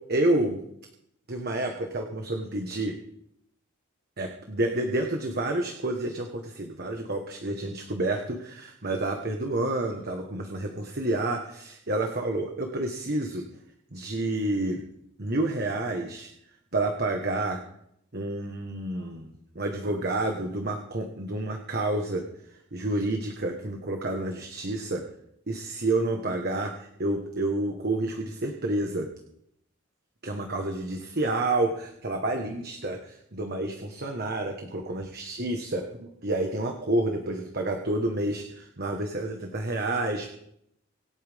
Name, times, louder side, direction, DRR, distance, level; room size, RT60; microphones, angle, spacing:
voice 1, 0.1-0.6 1.3-2.9 4.2-13.4 13.9-14.8 15.2-16.3 16.7-17.6 18.1-22.2 22.7-25.0 25.5-29.1 30.2-35.8 36.2-40.3, right 2 dB, 50° right, 3 dB, 1.4 m, -29 dB
26.0 x 8.9 x 3.6 m, 0.75 s
head